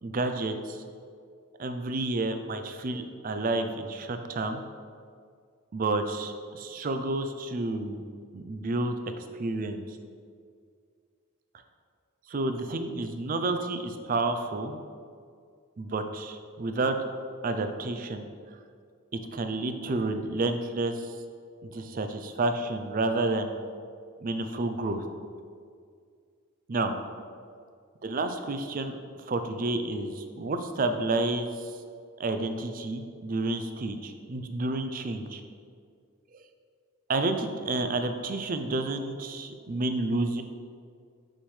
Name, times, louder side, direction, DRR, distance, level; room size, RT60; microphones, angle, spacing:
voice 1, 0.0-0.8 1.6-4.6 5.7-8.0 8.3-9.0 9.4-10.0 12.3-14.8 15.8-17.0 17.4-18.3 19.3-21.1 21.6-23.6 24.2-25.0 26.7-26.9 28.0-29.0 29.3-31.7 32.2-35.4 37.1-40.4, right 2 dB, 40° right, 7 dB, 0.4 m, -30 dB
6.2 x 6.2 x 3.2 m, 2.2 s
head